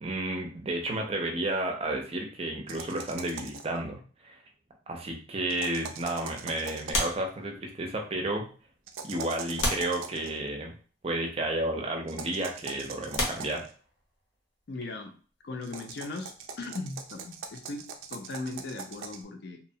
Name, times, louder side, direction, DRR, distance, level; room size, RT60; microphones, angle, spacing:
voice 1, 0.0-4.4 4.9-8.4 9.0-10.7 11.0-13.7, right 1 dB, 30° right, 2 dB, 0.5 m, -32 dB
sound 1, 2.7-3.8 5.5-7.1 8.9-10.3 12.1-13.7 15.6-19.2, right 5 dB, 85° right, 0.4 m, -42 dB
sound 2, 6.9-8.0 8.8-8.9 9.6-10.7 11.7-11.9 12.5-12.6 13.1-14.4 16.3-18.1 18.3-18.5, left 1 dB, 80° left, 0.8 m, -34 dB
voice 2, 14.7-15.1 15.4-16.3 16.6-19.6, left 3 dB, 55° left, 5 dB, 0.4 m, -38 dB
2.7 x 2.1 x 2.7 m, 0.40 s
head